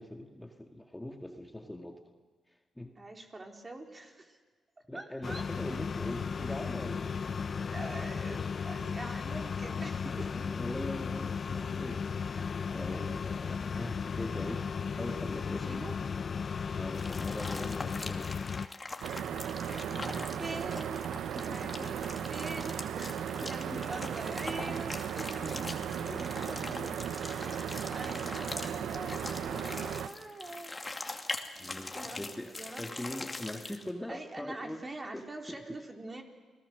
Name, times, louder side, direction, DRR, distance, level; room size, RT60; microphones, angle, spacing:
voice 1, 0.0-2.0 2.5-3.0 4.9-7.4 9.0-9.2 10.3-14.7 15.0-15.8 16.8-18.4 19.6-20.3 21.4-21.9 23.3-24.1 25.4-27.0 27.5-28.0 31.6-35.6, left 1 dB, 10° left, 3 dB, 2.0 m, -42 dB
voice 2, 3.0-4.4 4.9-5.4 7.6-10.5 12.9-13.2 15.6-16.0 20.4-21.1 21.4-23.2 23.5-25.5 27.2-30.7 31.9-33.0 34.1-36.2, right 2 dB, 30° right, 2 dB, 3.8 m, -44 dB
sound 1, 5.2-18.7, left 6 dB, 50° left, 0.6 m, -35 dB
sound 2, 16.9-33.9, left 2 dB, 25° left, 2.5 m, -42 dB
sound 3, 19.0-30.1, right 9 dB, 70° right, 0.8 m, -36 dB
29.5 x 19.5 x 6.5 m, 1.4 s
hypercardioid pair, 45°, 0 cm